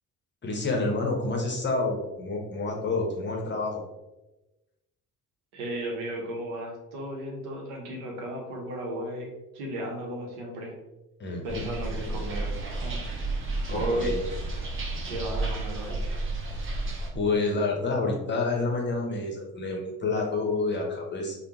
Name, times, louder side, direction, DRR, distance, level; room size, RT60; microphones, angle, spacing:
voice 1, 0.4-3.8 11.2-11.6 13.7-14.1 17.1-21.4, left 3 dB, 25° left, 0 dB, 0.7 m, -28 dB
voice 2, 5.5-10.7 11.4-12.5 12.8-13.0 13.7-14.1 14.9-16.0, equal, 65° right, 0 dB, 0.8 m, -34 dB
sound 1, 11.5-17.1, right 2 dB, 25° right, 0.7 m, -32 dB
3.4 x 2.1 x 2.8 m, 1.0 s
figure-of-eight pair, 45°, 46 cm